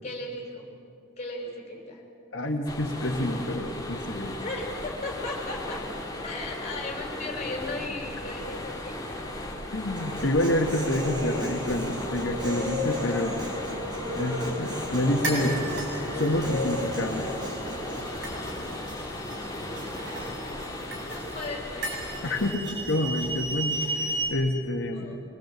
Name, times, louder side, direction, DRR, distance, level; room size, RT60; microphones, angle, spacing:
voice 1, 0.0-0.7 1.2-2.0 4.4-5.8 6.2-9.3 12.9-13.2 21.1-21.9 24.9-25.2, left 2 dB, 35° left, 0 dB, 5.3 m, -36 dB
voice 2, 2.3-4.4 9.7-13.4 14.1-17.3 22.2-25.1, left 1 dB, 80° left, 1 dB, 1.6 m, -28 dB
sound 1, 2.7-22.5, left 1 dB, 20° left, 2.5 m, -36 dB
Human voice, 10.0-18.0, left 1 dB, 25° right, 5.6 m, -34 dB
sound 2, 14.6-24.3, right 2 dB, 70° right, 7.6 m, -35 dB
25.5 x 20.5 x 8.1 m, 2.8 s
head